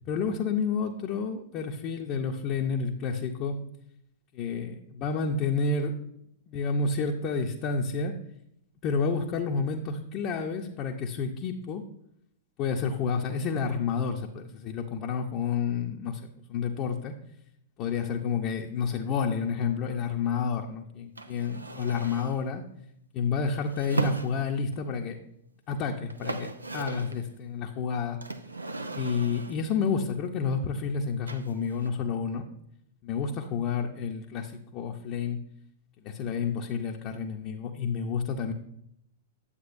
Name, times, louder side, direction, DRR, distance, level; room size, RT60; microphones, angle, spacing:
voice 1, 0.1-3.6 4.3-5.9 6.5-8.2 8.8-11.8 12.6-17.1 17.8-22.6 23.1-25.2 25.7-28.2 28.9-32.5 33.0-35.4 36.0-38.5, left 5 dB, 40° left, 0 dB, 0.8 m, -30 dB
sound 1, 21.2-22.4 23.7-24.8 25.7-25.8 26.0-27.2 28.2-29.7 31.3-31.9, right 3 dB, 85° right, 0.6 m, -37 dB
9.8 x 8.1 x 2.6 m, 0.75 s
figure-of-eight pair, 100°, 0 cm